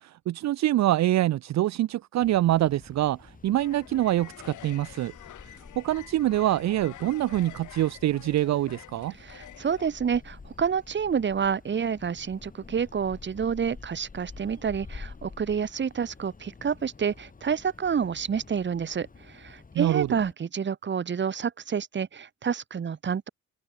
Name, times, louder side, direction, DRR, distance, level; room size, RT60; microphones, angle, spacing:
voice 1, 0.0-5.1 5.4-9.1 19.7-20.1, right 14 dB, 65° right, 0.7 m, -25 dB
sound 1, 2.2-20.3, left 4 dB, 25° left, 3.8 m, -49 dB
sound 2, 3.6-9.9, left 13 dB, 80° left, 5.4 m, -47 dB
voice 2, 9.2-23.3, right 7 dB, 40° right, 1.4 m, -29 dB
cardioid pair, 90°, 30 cm